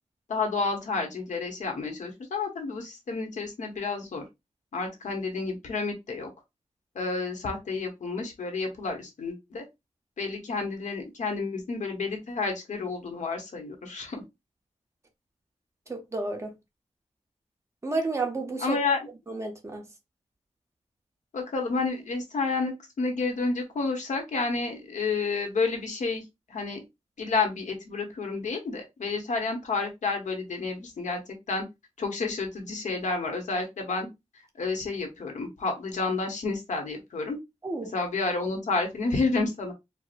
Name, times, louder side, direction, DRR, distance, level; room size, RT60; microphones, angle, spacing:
voice 1, 0.3-4.2 4.7-6.3 6.9-9.6 10.2-14.2 18.6-19.0 21.3-26.2 26.5-26.8 27.2-31.2 31.5-31.6 32.0-34.1 34.6-37.4 37.9-39.7, left 3 dB, 85° left, 1.0 m, -30 dB
voice 2, 15.9-16.5 17.8-18.8 19.3-19.9 37.6-37.9, right 3 dB, 25° right, 0.8 m, -31 dB
4.6 x 2.0 x 2.5 m
wide cardioid pair, 160°, 12 cm